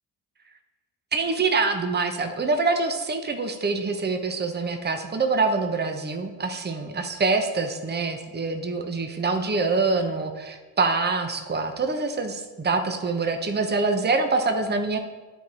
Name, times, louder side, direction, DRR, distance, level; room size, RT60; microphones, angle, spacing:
voice 1, 1.1-15.0, right 3 dB, 20° right, 6 dB, 0.9 m, -25 dB
9.3 x 4.1 x 4.6 m, 1.3 s
supercardioid pair, 60°, 48 cm